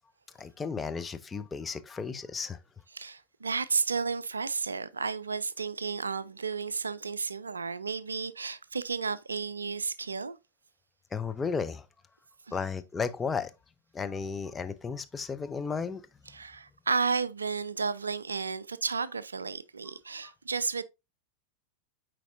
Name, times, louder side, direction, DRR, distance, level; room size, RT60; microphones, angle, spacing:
voice 1, 0.4-2.6 11.1-11.9 12.5-13.5 13.9-16.0 20.2-20.3, left 5 dB, 15° left, 0.5 m, -34 dB
voice 2, 2.9-10.4 16.3-20.8, right 5 dB, 75° right, 0.3 m, -32 dB
8.2 x 4.5 x 2.6 m
figure-of-eight pair, 90°, 0 cm